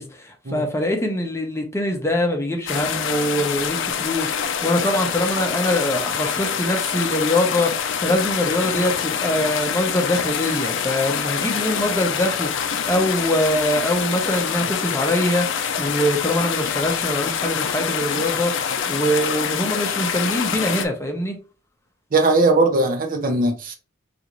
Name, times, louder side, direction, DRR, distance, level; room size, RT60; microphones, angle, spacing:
voice 1, 0.0-21.4, left 1 dB, 15° left, 0.6 m, -23 dB
sound 1, 2.7-20.9, left 7 dB, 65° left, 0.5 m, -25 dB
voice 2, 22.1-23.8, right 2 dB, 45° right, 0.6 m, -19 dB
3.9 x 2.5 x 2.9 m
head